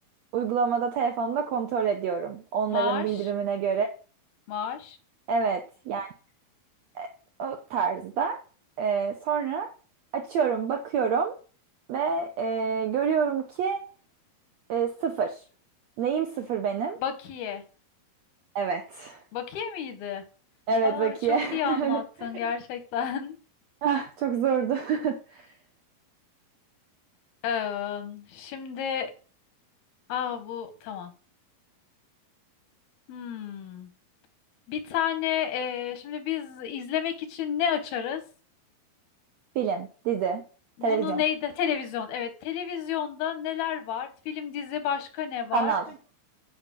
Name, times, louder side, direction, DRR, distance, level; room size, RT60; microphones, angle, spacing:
voice 1, 0.3-3.9 5.3-6.1 6.9-7.1 7.4-8.4 8.8-9.7 10.1-11.3 11.9-13.8 14.7-15.3 16.0-17.0 18.5-19.2 20.7-22.0 23.8-25.4 39.5-40.4 40.8-41.2 45.5-45.9, right 6 dB, 75° right, 5 dB, 1.6 m, -27 dB
voice 2, 2.7-3.3 4.5-5.0 17.0-17.6 19.3-20.2 20.8-23.4 27.4-29.1 30.1-31.1 33.1-33.9 34.7-38.2 40.8-45.7, left 9 dB, 85° left, 8 dB, 3.4 m, -31 dB
8.7 x 5.5 x 7.5 m, 0.38 s
omnidirectional pair, 4.3 m